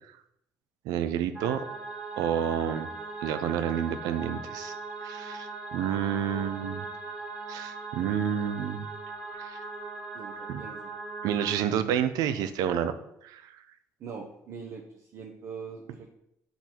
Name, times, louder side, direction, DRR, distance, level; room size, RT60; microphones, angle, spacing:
voice 1, 0.8-1.6 2.2-2.9 3.2-4.7 5.0-6.8 7.5-8.9 9.4-9.6 10.5-10.6 11.2-12.9 13.2-13.6, right 9 dB, 90° right, 11 dB, 0.6 m, -29 dB
sound 1, 1.4-11.6, right 3 dB, 15° right, 1.1 m, -39 dB
voice 2, 10.1-10.9 14.0-14.8 15.1-16.1, right 6 dB, 50° right, 0 dB, 0.9 m, -42 dB
8.2 x 4.0 x 4.5 m, 0.79 s
cardioid pair, 155°, 6 cm